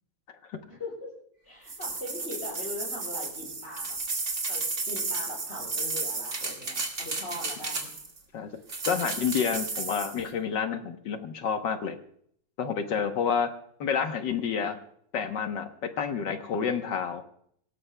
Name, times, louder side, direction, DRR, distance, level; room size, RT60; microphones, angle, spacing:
voice 1, 0.7-1.1 1.4-4.0 4.5-7.9, left 1 dB, 30° left, -4 dB, 8.3 m, -40 dB
sound 1, 1.7-8.2 8.7-10.2, right 3 dB, 40° right, 2.2 m, -33 dB
voice 2, 8.9-12.0 12.6-13.5 13.8-14.8 15.1-17.2, left 7 dB, 70° left, 6 dB, 1.7 m, -29 dB
26.5 x 17.0 x 2.2 m, 0.67 s
omnidirectional pair, 2.0 m